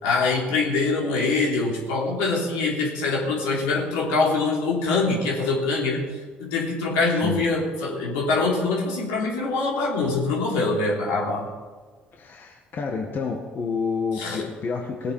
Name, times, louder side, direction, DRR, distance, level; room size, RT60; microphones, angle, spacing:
voice 1, 0.0-6.0 6.4-11.5 14.2-14.4, left 3 dB, 75° left, -3 dB, 3.4 m, -24 dB
voice 2, 7.1-7.4 12.1-15.1, left 5 dB, 45° left, 1 dB, 1.8 m, -29 dB
18.5 x 8.1 x 5.8 m, 1.4 s
hypercardioid pair, 60°, 5 cm